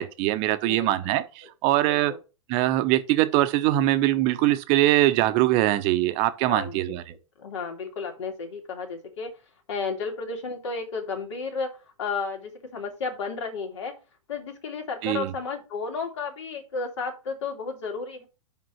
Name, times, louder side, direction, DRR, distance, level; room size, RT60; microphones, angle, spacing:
voice 1, 0.0-2.1 2.5-7.0 15.0-15.3, right 15 dB, 40° right, 0.8 m, -22 dB
voice 2, 1.8-2.2 6.5-9.3 9.7-13.9 14.3-18.3, left 4 dB, 60° left, 2.5 m, -33 dB
5.3 x 5.1 x 5.6 m
figure-of-eight pair, 110°, 17 cm